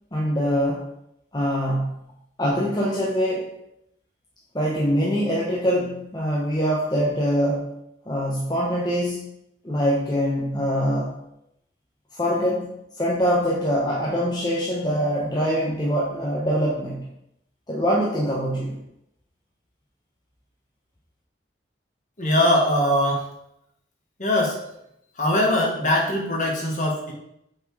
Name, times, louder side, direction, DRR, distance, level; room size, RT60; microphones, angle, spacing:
voice 1, 0.1-0.9 1.3-1.9 2.4-3.5 4.5-7.7 8.1-9.3 9.6-11.1 12.1-17.0 17.7-18.8, equal, 20° left, -4 dB, 0.9 m, -24 dB
voice 2, 22.2-23.3 24.2-24.6 25.2-27.1, left 1 dB, 40° left, -1 dB, 1.7 m, -21 dB
6.4 x 4.3 x 4.7 m, 0.78 s
head